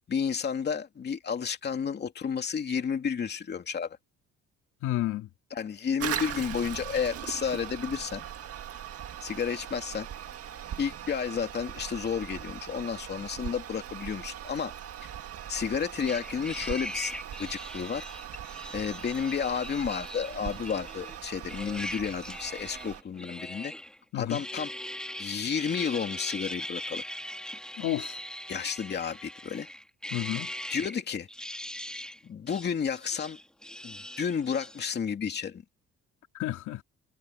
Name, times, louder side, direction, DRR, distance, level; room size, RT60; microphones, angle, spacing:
voice 1, 0.1-4.0 5.5-8.2 9.2-10.1 10.8-14.7 15.5-18.0 18.7-23.7 24.1-24.7 25.2-27.0 28.5-29.7 30.7-31.3 32.2-33.4 33.8-35.6, left 7 dB, 35° left, 2.6 m, -31 dB
voice 2, 4.8-5.3 24.1-24.4 27.8-28.2 30.1-30.5 36.3-36.8, left 14 dB, 80° left, 2.6 m, -31 dB
Toilet flush, 6.0-23.0, right 10 dB, 50° right, 1.8 m, -40 dB
sound 1, 16.1-21.2 21.5-24.0 24.3-31.0 31.3-32.2 32.5-34.8, left 1 dB, 5° left, 2.1 m, -40 dB
cardioid pair, 155°, 30 cm